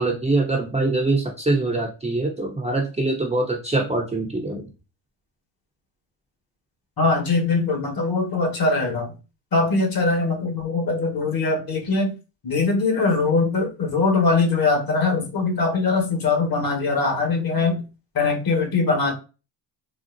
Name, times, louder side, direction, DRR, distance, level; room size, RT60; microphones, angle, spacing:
voice 1, 0.0-4.7, right 2 dB, 15° right, -1 dB, 0.7 m, -23 dB
voice 2, 7.0-9.2 9.5-12.1 12.4-17.8 18.1-19.1, left 3 dB, 45° left, 2 dB, 1.4 m, -22 dB
4.0 x 2.0 x 2.5 m, 0.31 s
supercardioid pair, 75°, 49 cm